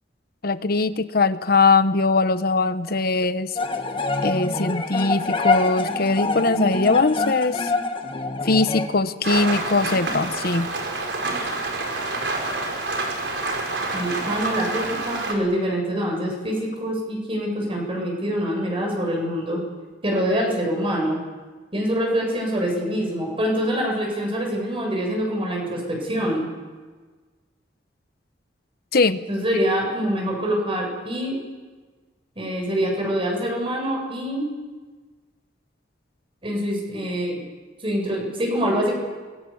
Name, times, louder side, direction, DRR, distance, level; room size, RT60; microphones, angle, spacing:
voice 1, 0.4-3.5 4.2-7.7 8.4-10.7 28.9-29.2, left 3 dB, 55° left, 12 dB, 1.1 m, -21 dB
sound 1, 3.5-8.9, left 3 dB, 30° left, 1.7 m, -25 dB
Rain, 9.2-15.3, right 2 dB, 75° right, 4.7 m, -27 dB
voice 2, 13.9-19.6 20.0-21.2 21.7-26.5 29.3-31.4 32.4-34.5 36.4-37.4 37.8-38.9, equal, 30° right, -1 dB, 7.7 m, -25 dB
28.5 x 22.0 x 7.3 m, 1.4 s
head